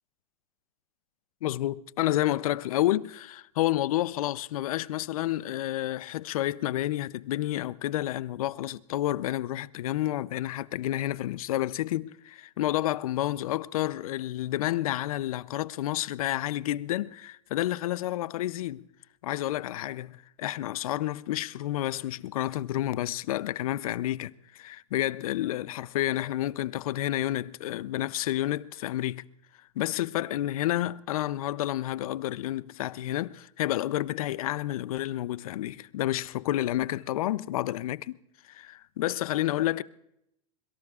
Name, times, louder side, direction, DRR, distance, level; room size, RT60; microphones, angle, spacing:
voice 1, 1.4-18.9 19.2-29.2 29.8-38.2 38.5-39.8, left 14 dB, 80° left, 0.5 m, -30 dB
25.5 x 22.5 x 2.4 m
supercardioid pair, 150°, 18 cm